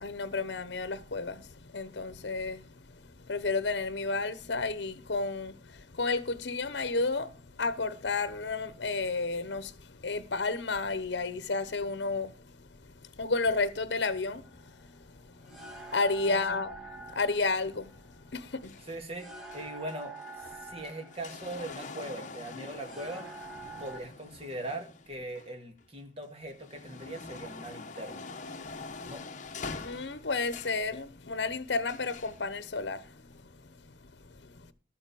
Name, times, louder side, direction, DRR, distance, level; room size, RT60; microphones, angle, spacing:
voice 1, 0.0-12.5 12.8-16.8 17.1-18.8 28.7-29.1 29.8-33.9 34.4-34.7, left 3 dB, 70° left, 1.0 m, -32 dB
sound 1, 14.4-24.0, right 3 dB, ahead, 2.4 m, -47 dB
voice 2, 16.3-16.6 18.9-20.1 20.5-23.3 23.8-28.3 29.0-29.2, right 1 dB, 35° right, 2.1 m, -40 dB
sound 2, 18.6-25.8 26.3-30.9 31.9-32.4 33.3-33.4, left 4 dB, 45° left, 1.1 m, -45 dB
12.5 x 7.1 x 7.0 m
head